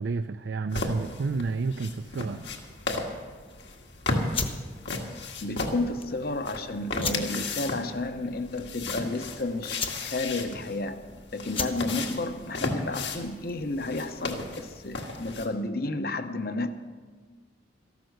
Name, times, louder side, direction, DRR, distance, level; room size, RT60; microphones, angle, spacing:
voice 1, 0.0-2.4, right 4 dB, 65° right, 0.4 m, -30 dB
sound 1, 0.7-15.5, left 2 dB, 70° left, 1.7 m, -35 dB
sound 2, 4.3-13.8, left 5 dB, 30° left, 1.0 m, -38 dB
voice 2, 5.4-11.1 11.3-16.7, left 2 dB, 50° left, 0.9 m, -32 dB
14.0 x 12.0 x 6.5 m
head